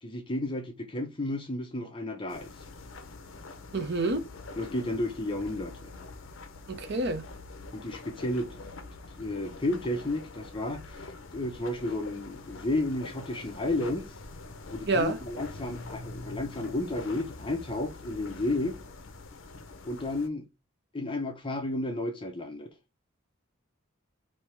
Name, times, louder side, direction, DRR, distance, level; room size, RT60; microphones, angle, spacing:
voice 1, 0.0-2.5 4.6-5.9 7.7-8.5 9.2-14.1 14.7-18.8 19.8-20.4 20.9-22.7, left 1 dB, 25° left, 0.7 m, -32 dB
sound 1, 2.3-20.3, left 3 dB, 65° left, 0.6 m, -45 dB
voice 2, 3.7-4.3 6.7-7.2 14.9-15.2, right 2 dB, 55° right, 0.7 m, -28 dB
3.5 x 2.8 x 4.4 m
head